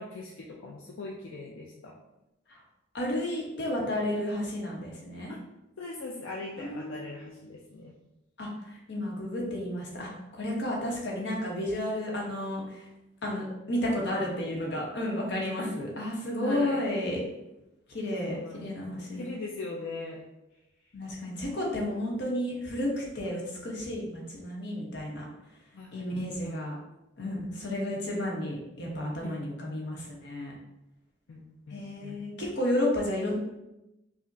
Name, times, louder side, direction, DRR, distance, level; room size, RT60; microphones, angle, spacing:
voice 1, 0.0-1.9 5.3-5.4 5.8-7.9 10.8-10.9 15.6-15.7 16.4-16.8 18.2-18.7 19.0-20.2 25.7-26.6 29.2-29.4 31.3-32.2, left 3 dB, 80° left, -2 dB, 0.4 m, -40 dB
voice 2, 2.9-5.3 6.6-7.4 8.4-12.9 13.2-17.2 17.9-19.2 20.9-25.3 25.9-26.7 27.2-30.5 31.7-33.4, left 1 dB, 60° left, -2 dB, 0.9 m, -32 dB
5.0 x 2.1 x 2.6 m, 0.94 s
head